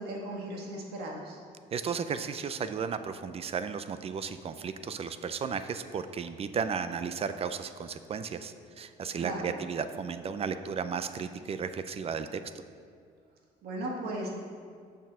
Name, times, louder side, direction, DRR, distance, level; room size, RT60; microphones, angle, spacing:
voice 1, 0.0-1.4 9.2-9.5 13.6-14.3, right 1 dB, 70° right, -1 dB, 1.7 m, -36 dB
voice 2, 1.7-12.4, right 6 dB, 35° right, 11 dB, 0.5 m, -34 dB
6.8 x 6.0 x 6.3 m, 2.2 s
cardioid pair, 110°, 17 cm